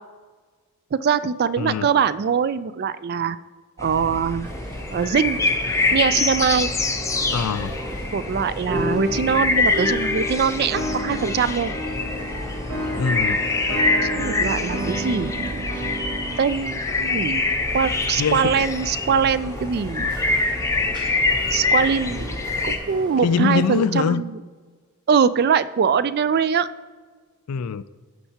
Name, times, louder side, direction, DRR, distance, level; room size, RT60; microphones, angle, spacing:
voice 1, 0.9-3.4 3.8-4.5 4.9-5.4 5.9-6.7 8.1-11.7 14.0-15.7 16.4-17.4 17.7-20.1 21.5-24.4 25.1-26.7, right 6 dB, 45° right, 0.3 m, -22 dB
sound 1, 3.8-22.8, left 3 dB, 15° left, 0.5 m, -25 dB
sound 2, 4.4-23.8, right 1 dB, 20° right, 1.3 m, -38 dB
voice 2, 7.3-7.7 13.0-13.4 18.2-18.5 23.2-24.2 27.5-27.8, left 6 dB, 85° left, 0.4 m, -23 dB
sound 3, 8.7-16.5, equal, 65° right, 1.5 m, -30 dB
16.0 x 5.5 x 2.8 m
head